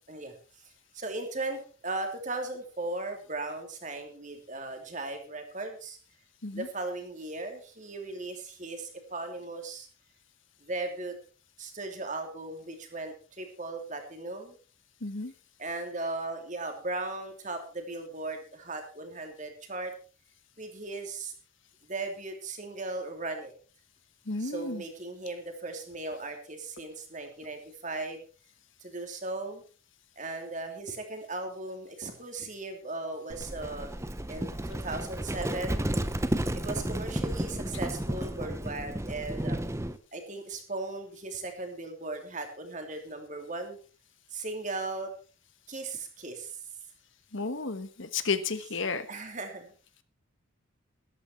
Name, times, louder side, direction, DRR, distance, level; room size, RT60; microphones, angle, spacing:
voice 1, 0.9-6.0 6.5-9.9 10.6-11.1 11.6-14.5 15.6-20.0 20.6-21.3 21.8-23.5 24.4-28.2 28.8-29.6 30.2-33.9 34.3-35.8 36.6-39.6 40.1-43.8 44.3-45.1 45.7-46.6 49.1-49.7, right 2 dB, 35° right, 5 dB, 2.9 m, -37 dB
voice 2, 15.0-15.3 24.3-24.8 47.3-49.1, left 4 dB, 65° left, 12 dB, 1.3 m, -32 dB
Livestock farm animals working animals, 33.3-40.0, right 1 dB, 15° right, 0.8 m, -32 dB
13.5 x 12.5 x 4.5 m, 0.37 s
head